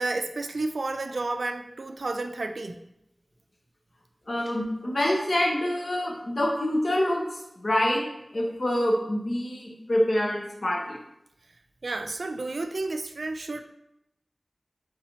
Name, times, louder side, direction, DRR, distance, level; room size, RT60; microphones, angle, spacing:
voice 1, 0.0-2.8 11.8-13.6, right 2 dB, 85° right, 6 dB, 0.3 m, -31 dB
voice 2, 4.3-8.1 8.3-11.0, left 1 dB, 65° left, -1 dB, 0.8 m, -26 dB
4.2 x 4.0 x 2.8 m, 0.84 s
wide cardioid pair, 50°, 0 cm